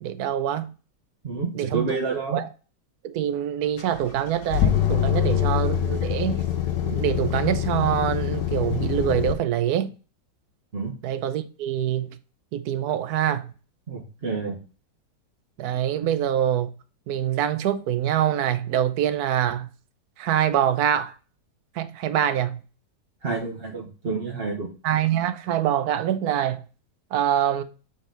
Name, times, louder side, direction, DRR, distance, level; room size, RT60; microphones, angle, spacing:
voice 1, 0.0-0.7 1.5-1.9 2.1-2.5 3.0-6.4 6.8-9.9 11.0-12.2 12.5-13.4 15.6-16.7 17.1-19.7 20.2-21.1 21.8-22.6 24.8-26.6 27.1-27.6, right 10 dB, 70° right, 1.1 m, -25 dB
voice 2, 1.2-2.4 5.3-5.4 10.7-10.9 13.9-14.6 23.2-24.7, right 4 dB, 40° right, 1.1 m, -29 dB
sound 1, 3.8-9.3, left 11 dB, 85° left, 1.5 m, -24 dB
7.4 x 3.9 x 3.9 m
omnidirectional pair, 1.8 m